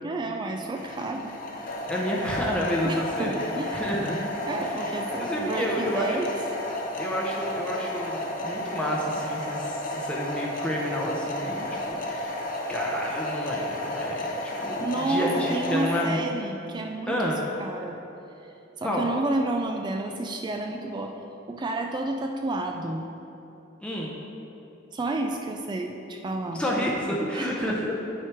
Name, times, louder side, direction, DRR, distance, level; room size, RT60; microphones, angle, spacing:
voice 1, 0.0-1.3 2.8-3.9 4.5-6.3 14.8-17.3 17.6-18.0 18.8-21.1 21.5-23.1 24.9-26.6 27.3-27.8, right 2 dB, 20° right, 3 dB, 0.3 m, -30 dB
sound 1, 0.7-16.1, left 1 dB, 45° left, 0.8 m, -32 dB
voice 2, 1.8-3.3 3.7-4.2 4.6-6.3 7.0-12.4 12.7-16.2 17.1-17.4 18.8-19.1 23.8-24.1 26.5-27.9, equal, 5° left, -4 dB, 0.7 m, -30 dB
8.8 x 4.7 x 4.6 m, 3.0 s
head